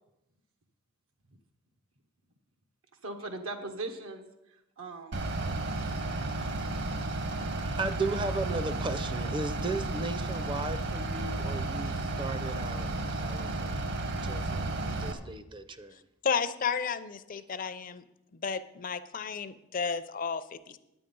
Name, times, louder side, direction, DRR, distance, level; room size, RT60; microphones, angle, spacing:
voice 1, 3.0-5.2, right 2 dB, 80° right, 5 dB, 0.9 m, -40 dB
Bus / Idling, 5.1-15.1, right 2 dB, 55° right, 0.9 m, -33 dB
voice 2, 7.6-16.1, right 3 dB, 25° right, 12 dB, 0.5 m, -36 dB
voice 3, 16.2-18.0 18.3-20.8, left 6 dB, 40° left, 13 dB, 0.5 m, -32 dB
9.8 x 9.1 x 5.3 m, 0.91 s
head